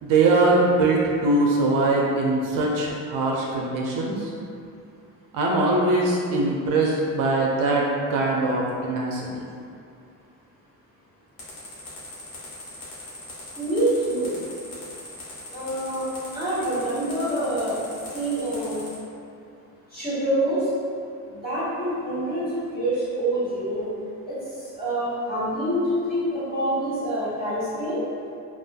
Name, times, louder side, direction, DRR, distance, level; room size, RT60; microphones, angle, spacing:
voice 1, 0.0-4.3 5.3-7.8 8.1-9.4, right 2 dB, 60° right, -2 dB, 0.5 m, -22 dB
sound 1, 11.4-18.9, left 2 dB, 80° left, 0.9 m, -40 dB
voice 2, 13.5-14.4 15.5-16.1 16.3-18.8 19.9-20.6 21.3-23.9 24.3-24.4 24.7-28.0, right 1 dB, 25° left, -12 dB, 1.5 m, -26 dB
2.4 x 2.3 x 2.3 m, 2.5 s
cardioid pair, 95°, 37 cm